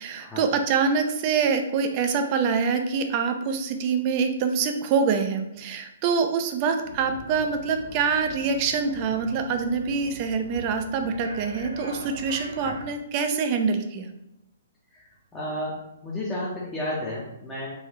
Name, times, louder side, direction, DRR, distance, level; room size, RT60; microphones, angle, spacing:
voice 1, 0.0-14.1, right 5 dB, 35° right, 6 dB, 0.5 m, -25 dB
sound 1, 6.8-12.8, right 1 dB, 65° right, 1.0 m, -42 dB
voice 2, 15.3-15.8 16.0-17.7, left 1 dB, 10° left, -8 dB, 0.8 m, -32 dB
3.9 x 2.6 x 3.0 m, 0.85 s
figure-of-eight pair, 125°, 0 cm